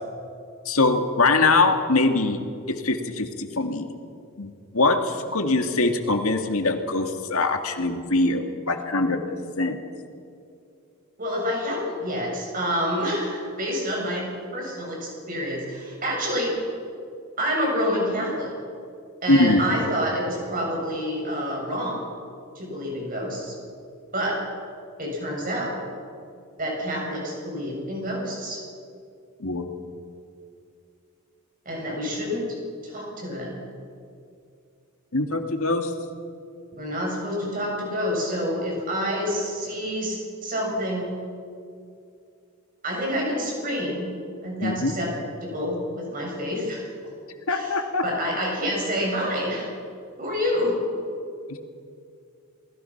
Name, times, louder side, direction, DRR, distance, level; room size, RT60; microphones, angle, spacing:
voice 1, 0.7-2.4 2.7-3.9 4.4-9.2 9.6-9.8 19.3-19.7 29.4-29.7 35.1-35.9 44.6-45.0 47.5-48.1 51.5-51.6, left 2 dB, 75° left, 5 dB, 2.1 m, -22 dB
voice 2, 11.2-14.3 14.5-16.5 17.4-18.5 19.2-22.0 22.6-23.5 24.1-24.4 25.0-25.8 26.6-28.6 31.7-32.4 32.8-33.6 36.7-41.1 42.8-44.1 44.4-45.1 45.4-46.8 47.5-49.7 50.2-50.8, equal, 40° right, -2 dB, 7.4 m, -28 dB
29.0 x 20.0 x 5.9 m, 2.4 s
head